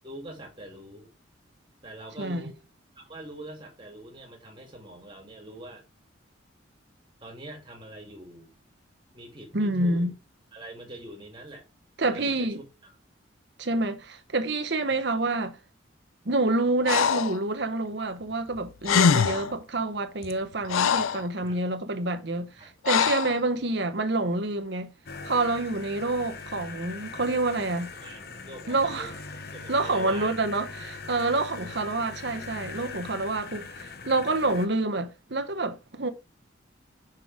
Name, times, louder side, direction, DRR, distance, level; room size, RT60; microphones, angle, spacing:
voice 1, 0.0-1.1 1.8-2.6 2.9-5.8 7.2-8.5 9.1-10.1 10.5-11.6 12.1-12.6 14.8-15.0 21.4-21.6 22.6-22.7 23.2-23.4 27.7-29.1 29.5-30.3 31.5-31.7, right 1 dB, 25° right, 2.5 m, -44 dB
voice 2, 9.5-10.1 12.0-12.6 13.6-15.6 16.2-24.9 25.2-27.9 28.7-29.1 29.7-36.1, right 2 dB, 55° right, 1.0 m, -27 dB
Breathing, 16.9-17.4 18.6-18.7 18.8-19.5 20.2-21.3 22.8-23.4, left 7 dB, 85° left, 0.4 m, -23 dB
sound 1, 25.1-34.7, left 4 dB, 50° left, 0.9 m, -41 dB
6.1 x 5.1 x 4.7 m
head